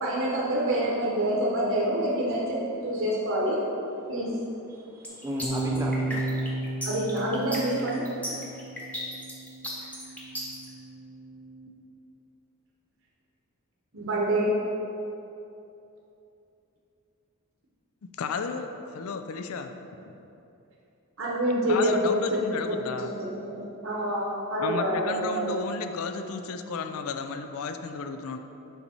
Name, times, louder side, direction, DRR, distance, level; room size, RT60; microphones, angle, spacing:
voice 1, 0.0-3.6 4.1-4.3 6.8-8.0 13.9-14.5 21.2-22.4 22.7-25.7, right 1 dB, 60° right, -4 dB, 1.0 m, -27 dB
voice 2, 4.7-6.3 8.4-8.6, equal, 15° right, -2 dB, 0.5 m, -37 dB
sound 1, 5.0-10.7, equal, 5° left, 1.0 m, -35 dB
sound 2, 5.4-11.7, right 1 dB, 35° left, 0.7 m, -34 dB
voice 3, 18.2-19.7 20.0-20.1 21.7-23.1 24.6-28.4, left 5 dB, 70° left, 7 dB, 0.4 m, -33 dB
7.1 x 5.4 x 4.2 m, 2.9 s
head